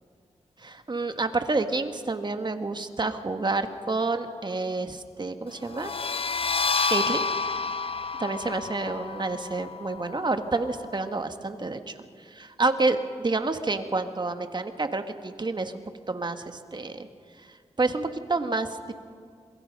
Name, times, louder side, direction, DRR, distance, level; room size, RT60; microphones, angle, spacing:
voice 1, 0.6-5.9 6.9-7.3 8.2-17.1 17.4-18.9, right 3 dB, 40° right, 7 dB, 1.7 m, -29 dB
sound 1, 5.7-11.1, left 4 dB, 50° left, 0.9 m, -30 dB
27.5 x 22.5 x 5.5 m, 2.2 s
cardioid pair, 60°, 12 cm